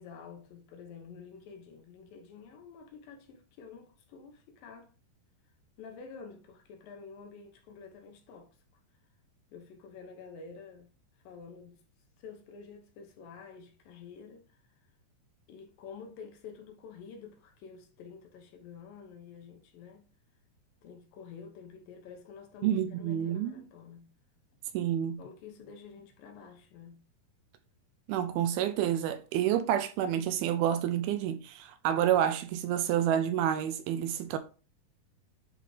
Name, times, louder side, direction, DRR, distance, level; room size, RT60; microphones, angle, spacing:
voice 1, 0.0-4.9 5.8-8.5 9.5-10.9 11.2-11.8 12.2-14.6 15.5-20.1 20.8-24.1 25.2-27.0, left 5 dB, 70° left, 2.7 m, -49 dB
voice 2, 22.6-23.5 24.7-25.2 28.1-34.4, right 10 dB, 85° right, 2.3 m, -29 dB
10.0 x 3.7 x 3.2 m
omnidirectional pair, 4.5 m